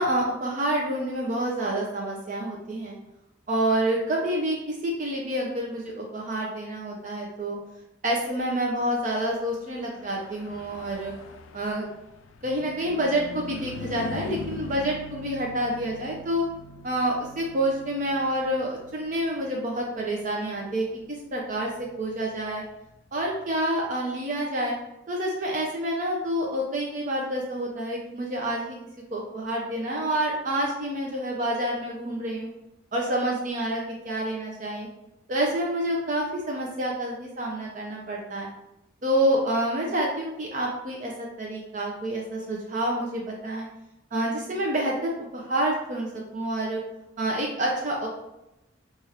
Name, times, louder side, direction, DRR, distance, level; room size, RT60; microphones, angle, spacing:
voice 1, 0.0-3.0 3.5-7.6 8.0-11.1 11.5-11.9 12.4-16.4 16.8-21.7 22.0-22.6 23.1-24.7 25.1-28.8 29.1-32.5 32.9-34.9 35.3-38.5 39.0-43.7 44.1-46.8 47.2-48.1, right 1 dB, 40° right, -2 dB, 0.5 m, -28 dB
Car passing by / Truck, 9.7-23.4, left 4 dB, 85° left, 0.3 m, -43 dB
4.2 x 2.4 x 3.2 m, 0.91 s
head